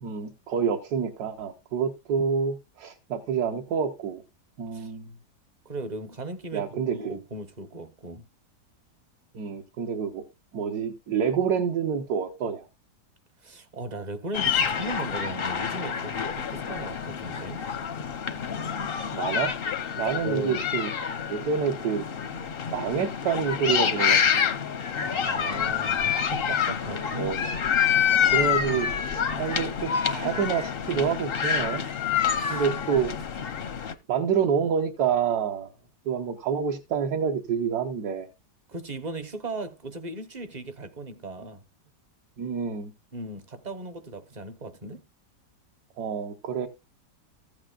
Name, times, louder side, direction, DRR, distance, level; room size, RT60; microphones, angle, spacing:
voice 1, 0.0-4.2 4.6-5.1 6.5-7.2 9.3-10.2 10.5-12.7 19.1-19.5 20.0-20.9 21.3-22.0 22.7-24.2 27.2-27.4 28.3-31.9 32.5-33.1 34.1-35.7 36.1-38.3 42.4-42.9 46.0-46.7, right 7 dB, 65° right, 1.4 m, -28 dB
voice 2, 5.6-8.3 13.4-17.7 20.2-20.6 25.0-27.4 32.4-32.6 38.7-41.6 43.1-45.1, right 2 dB, 35° right, 0.7 m, -37 dB
sound 1, 14.3-33.9, left 8 dB, 55° left, 0.7 m, -27 dB
14.5 x 8.8 x 2.4 m
omnidirectional pair, 1.9 m